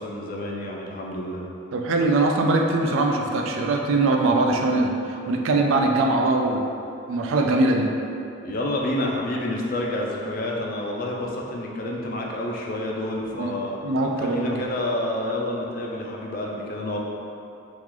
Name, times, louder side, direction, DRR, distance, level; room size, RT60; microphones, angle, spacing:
voice 1, 0.0-1.4 8.4-13.8 14.2-17.0, left 1 dB, 45° left, -1 dB, 0.4 m, -29 dB
voice 2, 1.7-6.7 7.1-7.9 13.4-14.6, right 2 dB, 80° right, 2 dB, 0.3 m, -22 dB
3.0 x 2.4 x 3.7 m, 2.7 s
head